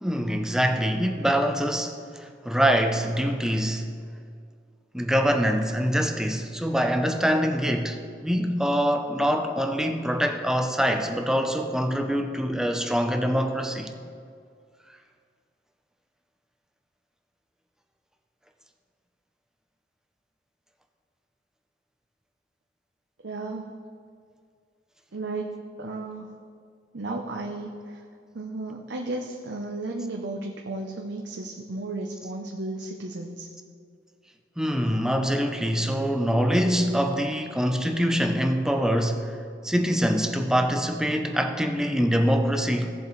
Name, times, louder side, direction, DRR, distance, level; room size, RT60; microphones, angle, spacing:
voice 1, 0.0-3.9 4.9-13.9 34.6-39.4 39.6-42.9, equal, 5° right, 4 dB, 0.7 m, -24 dB
voice 2, 23.2-23.8 25.1-26.3 26.9-28.0 28.3-33.5, right 2 dB, 85° right, 0 dB, 0.8 m, -34 dB
16.5 x 7.1 x 3.2 m, 2.2 s
head